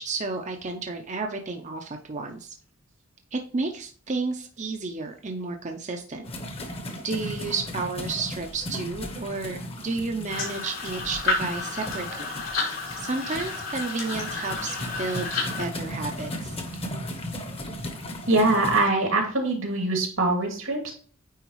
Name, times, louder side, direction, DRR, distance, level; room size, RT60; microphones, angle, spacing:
voice 1, 0.0-2.5 3.3-6.3 6.6-6.7 7.0-12.4 13.0-15.3 15.6-16.6, right 3 dB, 35° right, 4 dB, 0.6 m, -32 dB
sound 1, 6.2-18.9, left 1 dB, 30° left, 1.0 m, -36 dB
sound 2, 10.3-15.6, left 3 dB, 85° left, 3.1 m, -31 dB
voice 2, 18.3-20.9, right 2 dB, 90° right, 1 dB, 2.5 m, -23 dB
9.2 x 4.0 x 3.1 m, 0.43 s
head